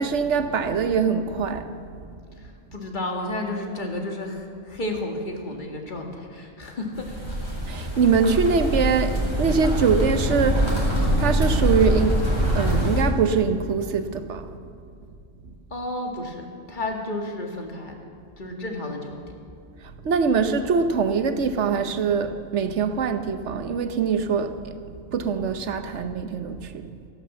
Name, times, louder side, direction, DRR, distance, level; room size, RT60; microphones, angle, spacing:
voice 1, 0.0-2.0 7.7-14.5 20.0-24.8 25.1-26.9, right 5 dB, 70° right, 1.2 m, -23 dB
voice 2, 2.4-7.2 15.7-18.0 18.4-19.4, left 1 dB, 40° left, 2.0 m, -32 dB
sound 1, 7.0-13.0, equal, 20° left, 4.8 m, -24 dB
15.0 x 11.5 x 7.4 m
omnidirectional pair, 1.3 m